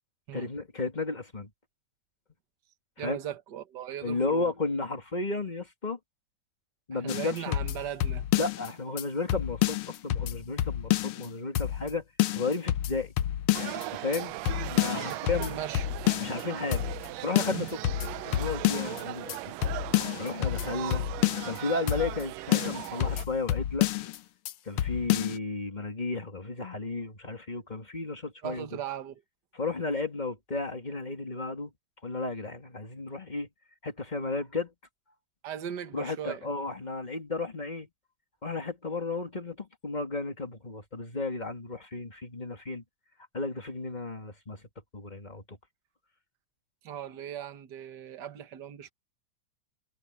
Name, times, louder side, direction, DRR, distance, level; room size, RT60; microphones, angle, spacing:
voice 1, 0.3-1.5 3.0-3.2 4.0-6.0 6.9-7.6 8.4-12.0 12.3-13.1 13.9-15.5 16.2-16.9 17.2-17.7 18.2-19.6 20.2-21.1 21.4-23.9 24.6-28.7 29.5-31.7 32.0-33.5 33.8-34.7 35.9-37.9 38.4-42.8 43.3-44.6 44.9-45.6, left 3 dB, 15° left, 1.8 m, -33 dB
voice 2, 3.0-4.5 6.9-8.3 14.6-14.7 15.0-15.9 17.5-17.7 28.4-29.2 35.4-36.5 46.8-48.9, right 10 dB, 45° right, 1.5 m, -38 dB
sound 1, 7.1-8.7 9.0-9.1 9.3-11.3 11.6-11.9 12.2-13.8 14.1-14.2 14.5-16.4 16.7-17.1 17.4-19.0 19.3-19.4 19.6-21.6 21.9-22.2 22.5-24.2 24.5-24.6 24.8-25.4, left 14 dB, 75° left, 1.3 m, -29 dB
sound 2, 13.5-23.2, right 17 dB, 80° right, 1.6 m, -38 dB
omnidirectional pair, 3.4 m